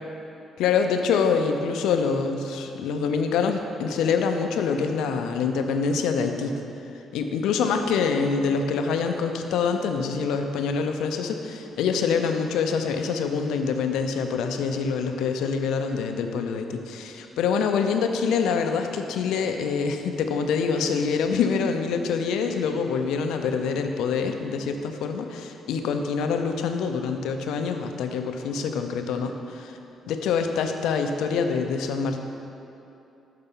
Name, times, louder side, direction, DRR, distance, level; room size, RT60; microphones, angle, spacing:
voice 1, 0.6-6.5 7.1-29.8 30.1-32.2, left 5 dB, 85° left, 5 dB, 0.5 m, -25 dB
5.9 x 5.5 x 5.4 m, 2.8 s
cardioid pair, 90°, 0 cm